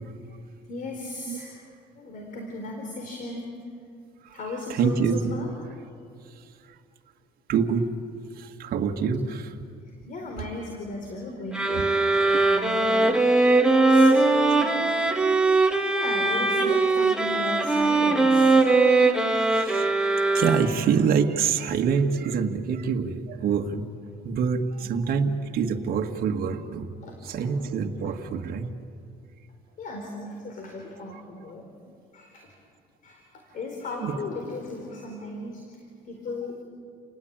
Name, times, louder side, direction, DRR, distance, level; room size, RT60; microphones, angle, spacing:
voice 1, 0.7-1.6 1.9-3.6 4.3-5.5 10.1-11.9 12.5-13.2 13.9-15.0 15.9-18.5 24.8-25.0 27.0-27.5 29.8-31.7 32.1-32.5 33.0-33.2 33.5-35.6 36.1-36.6, left 2 dB, 55° left, 2 dB, 4.3 m, -36 dB
voice 2, 4.4-5.4 7.5-7.9 8.4-9.5 11.7-11.8 12.2-12.4 16.6-16.7 19.3-19.9 20.3-23.9 24.2-26.9 27.2-28.7 31.1-31.2 34.0-34.2, right 6 dB, 60° right, 3 dB, 1.8 m, -26 dB
sound 1, 11.5-21.0, right 3 dB, 5° right, 2.2 m, -21 dB
29.5 x 19.5 x 8.9 m, 2.3 s
cardioid pair, 110°, 17 cm